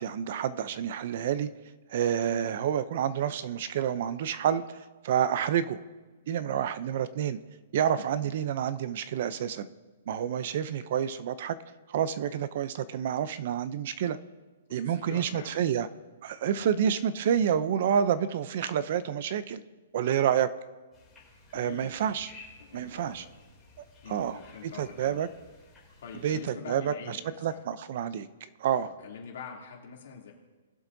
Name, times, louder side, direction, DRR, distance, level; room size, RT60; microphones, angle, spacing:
voice 1, 0.0-1.5 1.9-5.8 6.3-7.4 7.7-9.7 10.1-11.6 11.9-14.2 14.7-15.9 16.2-19.6 19.9-20.5 21.5-22.3 22.7-23.2 24.1-24.4 24.8-25.3 26.2-28.3 28.6-28.9, right 9 dB, 45° right, 14 dB, 0.5 m, -28 dB
voice 2, 14.7-15.6 16.5-16.7 21.5-21.9 22.6-23.3 24.0-25.3 26.0-27.6 28.8-30.3, left 7 dB, 55° left, -1 dB, 2.7 m, -45 dB
sound 1, 20.9-26.4, left 3 dB, 10° left, 2.8 m, -54 dB
20.0 x 7.2 x 2.7 m, 1.3 s
hypercardioid pair, 170°, 0 cm